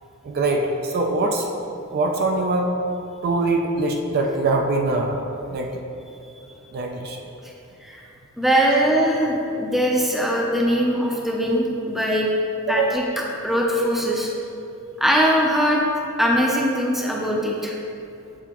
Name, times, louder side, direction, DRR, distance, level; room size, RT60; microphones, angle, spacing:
voice 1, 0.2-1.5 1.9-2.7 3.2-5.2 5.5-5.8 6.7-7.2 8.7-8.8 12.7-13.0, right 2 dB, 45° right, 2 dB, 0.4 m, -23 dB
voice 2, 8.4-12.3 12.7-14.3 15.0-15.8 16.2-17.8, equal, ahead, -2 dB, 0.6 m, -21 dB
6.9 x 4.6 x 3.0 m, 2.7 s
head